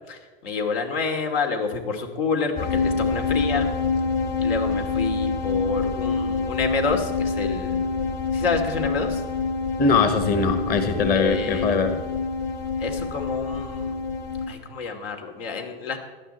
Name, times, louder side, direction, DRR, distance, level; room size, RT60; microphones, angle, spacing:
voice 1, 0.1-3.7 4.4-7.9 8.3-9.2 11.1-11.7 12.8-14.0 14.5-16.0, left 4 dB, 75° left, 4 dB, 2.6 m, -28 dB
sound 1, 2.6-14.5, left 4 dB, 60° left, 3.1 m, -26 dB
voice 2, 9.8-12.0, left 4 dB, 30° left, 7 dB, 1.4 m, -21 dB
17.5 x 12.0 x 4.4 m, 1.3 s
hypercardioid pair, 120°, 29 cm